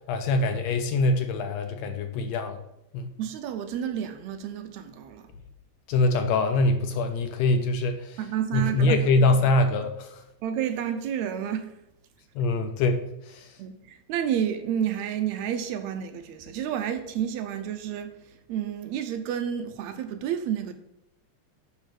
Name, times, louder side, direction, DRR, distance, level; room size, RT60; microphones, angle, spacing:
voice 1, 0.1-2.6 2.9-3.1 5.9-8.2 8.5-10.2 12.4-13.5, left 2 dB, 75° left, 1.7 m, -24 dB
voice 2, 3.2-5.3 8.2-9.0 10.4-11.7 13.6-18.1 18.5-20.7, right 9 dB, 75° right, 1.8 m, -30 dB
9.8 x 3.5 x 5.9 m
omnidirectional pair, 3.4 m